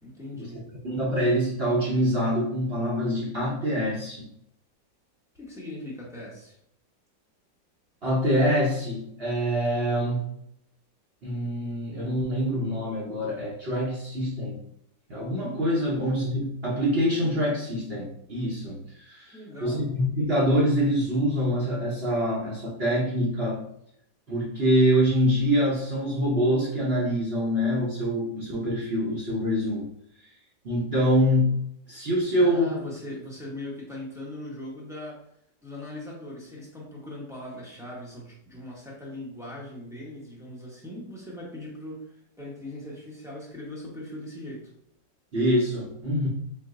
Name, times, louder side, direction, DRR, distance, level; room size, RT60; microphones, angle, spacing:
voice 1, 0.0-0.7 5.3-6.6 19.3-19.8 32.4-35.3 35.6-44.7, left 1 dB, 5° right, -5 dB, 0.5 m, -40 dB
voice 2, 0.8-4.3 8.0-10.3 11.2-14.6 15.1-19.4 19.6-23.6 24.3-29.8 30.2-30.3 30.6-31.6 31.9-32.8 45.3-46.3, equal, 50° right, -5 dB, 0.7 m, -25 dB
4.4 x 2.1 x 3.6 m, 0.73 s
omnidirectional pair, 2.0 m